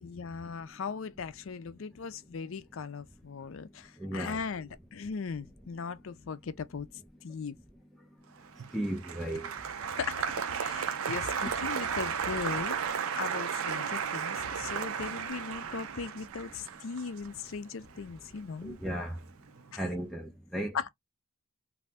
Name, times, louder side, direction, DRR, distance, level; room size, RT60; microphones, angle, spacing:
voice 1, 0.0-6.9 7.2-7.6 10.0-10.2 10.6-12.8 13.2-18.8 19.7-19.8 20.7-20.9, left 5 dB, 65° left, 0.5 m, -38 dB
voice 2, 4.0-4.4 8.7-9.5 18.6-19.2 19.8-20.8, right 1 dB, ahead, 0.5 m, -35 dB
Applause, 8.5-18.8 19.1-19.7, right 7 dB, 75° right, 0.5 m, -34 dB
2.6 x 2.6 x 3.3 m
head